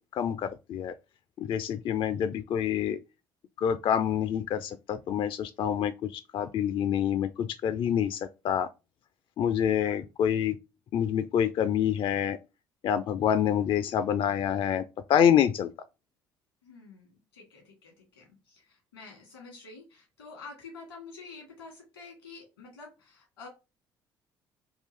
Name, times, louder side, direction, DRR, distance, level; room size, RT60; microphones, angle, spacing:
voice 1, 0.1-0.9 1.4-3.0 3.6-8.7 9.4-10.6 10.9-12.4 12.8-14.8 15.1-15.7, left 9 dB, 45° left, 0.3 m, -27 dB
voice 2, 16.6-23.5, left 4 dB, 90° left, 1.7 m, -48 dB
3.7 x 2.4 x 3.2 m
hypercardioid pair, 55°, 12 cm